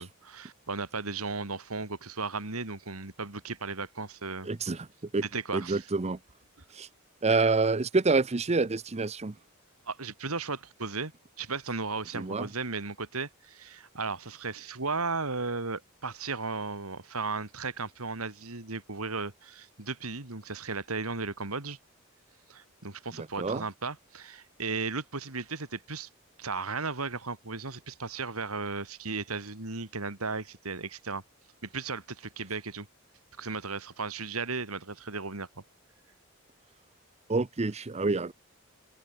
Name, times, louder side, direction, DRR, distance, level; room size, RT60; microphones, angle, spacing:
voice 1, 0.0-4.5 5.2-5.8 9.9-11.1 11.4-21.8 22.5-26.1 26.4-31.2 31.6-32.9 33.4-35.6, right 4 dB, 85° right, 3.0 m, -35 dB
voice 2, 4.4-4.9 5.1-5.2 5.5-6.2 6.7-6.9 7.2-9.3 12.1-12.5 23.2-23.6 37.3-38.3, right 3 dB, 30° right, 0.7 m, -27 dB
open air
head